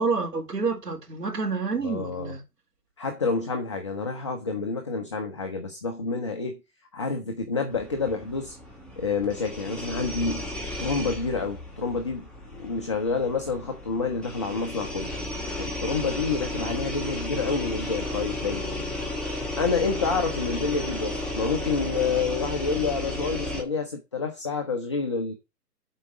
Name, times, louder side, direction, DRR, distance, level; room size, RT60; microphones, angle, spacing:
voice 1, 0.0-2.4, right 4 dB, 85° right, 4.1 m, -28 dB
voice 2, 1.8-2.4 3.0-6.6 6.9-8.6 9.0-10.5 10.8-15.1 15.6-18.6 19.6-25.3, left 4 dB, 20° left, 0.5 m, -28 dB
sound 1, 7.7-23.6, left 1 dB, ahead, 1.6 m, -34 dB
7.6 x 4.7 x 5.8 m
hypercardioid pair, 145°, 47 cm